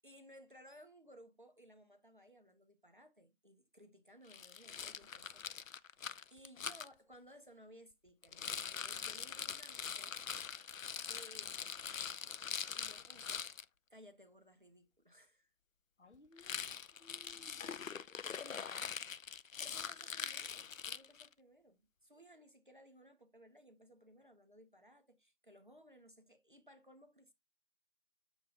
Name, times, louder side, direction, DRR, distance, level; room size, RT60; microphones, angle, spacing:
voice 1, 0.0-5.9 6.3-10.5 11.0-11.8 12.7-13.5 13.9-15.5 18.1-18.3 19.6-27.3, equal, 40° right, 0.7 m, -60 dB
Rattle, 4.3-6.9 8.2-13.6 16.4-21.3, left 7 dB, 85° left, 0.5 m, -43 dB
voice 2, 16.0-16.6 17.0-17.8 18.3-18.9, left 4 dB, 60° left, 0.9 m, -58 dB
7.3 x 2.5 x 5.1 m
figure-of-eight pair, 165°, 39 cm